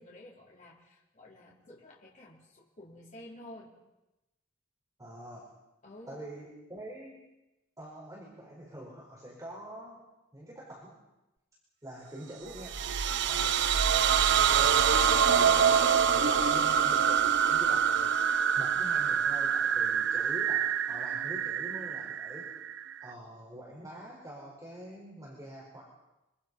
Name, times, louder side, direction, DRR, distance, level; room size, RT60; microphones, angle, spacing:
voice 1, 0.0-3.7 5.8-6.2, left 1 dB, 40° left, -4 dB, 4.5 m, -51 dB
voice 2, 5.0-5.5 6.1-7.3 7.8-11.0 11.8-22.5 23.0-25.9, right 1 dB, 15° right, -4 dB, 5.1 m, -46 dB
sound 1, 12.5-23.1, right 7 dB, 60° right, 0.8 m, -26 dB
26.0 x 25.5 x 5.6 m, 0.98 s
head